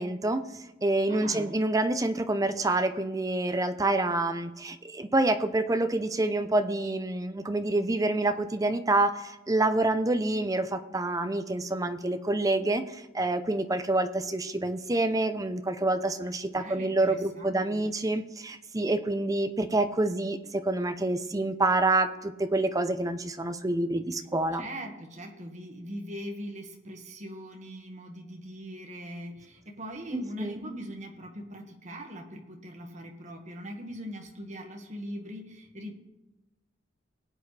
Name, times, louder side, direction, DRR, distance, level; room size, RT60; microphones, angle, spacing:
voice 1, 0.0-24.6 30.1-30.6, right 2 dB, 20° right, 9 dB, 0.6 m, -27 dB
voice 2, 1.1-1.5 16.5-17.8 24.5-35.9, equal, 40° right, 1 dB, 1.7 m, -41 dB
20.5 x 8.2 x 3.3 m, 1.0 s
head